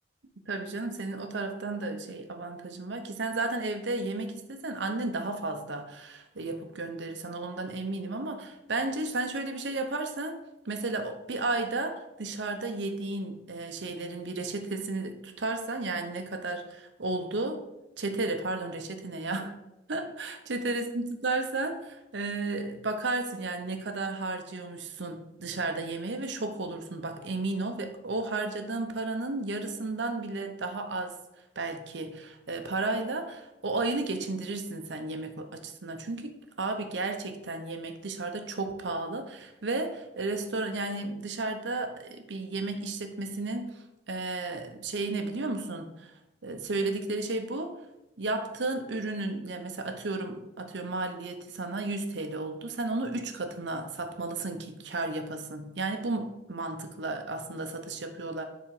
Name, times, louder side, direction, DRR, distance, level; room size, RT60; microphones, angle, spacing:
voice 1, 0.5-17.6 18.0-19.5 19.9-31.1 31.6-46.1 46.4-47.7 48.2-58.4, right 2 dB, 65° right, 6 dB, 0.8 m, -33 dB
7.3 x 4.0 x 4.8 m, 0.92 s
head